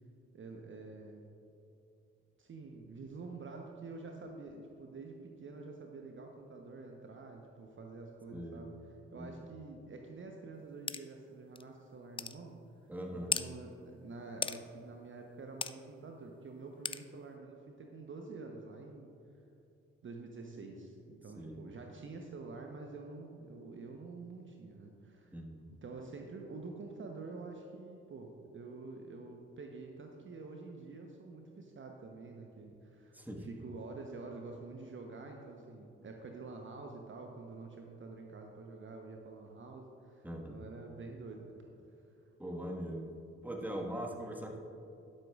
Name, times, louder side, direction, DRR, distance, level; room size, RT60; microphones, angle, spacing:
voice 1, 0.3-1.3 2.4-12.6 13.1-19.1 20.0-25.3 25.8-41.7, right 3 dB, 40° right, 2 dB, 1.0 m, -48 dB
voice 2, 8.3-8.6 9.2-9.4 12.9-13.3 21.3-21.6 25.3-25.6 33.1-33.5 40.2-40.5 42.4-43.1 43.4-44.6, equal, 5° right, 1 dB, 1.6 m, -41 dB
sound 1, 10.9-11.0 11.6-11.7 12.2-12.4 13.3-13.5 14.4-14.6 15.6-15.7 16.8-17.0, left 5 dB, 15° left, 0.4 m, -35 dB
12.0 x 11.5 x 2.5 m, 2.8 s
figure-of-eight pair, 40°, 32 cm